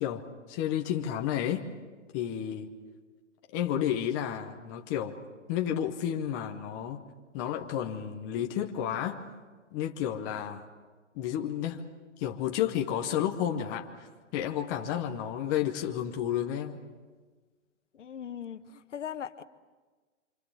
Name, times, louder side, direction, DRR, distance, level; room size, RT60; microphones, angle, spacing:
voice 1, 0.0-1.7 2.1-2.7 3.5-5.2 5.5-7.0 7.3-9.2 9.7-10.6 11.1-11.8 12.2-13.9 14.3-16.8, left 10 dB, 15° left, 3 dB, 0.8 m, -31 dB
voice 2, 17.9-19.4, left 9 dB, 65° left, 11 dB, 1.3 m, -39 dB
26.5 x 25.5 x 7.0 m, 1.4 s
hypercardioid pair, 160°, 38 cm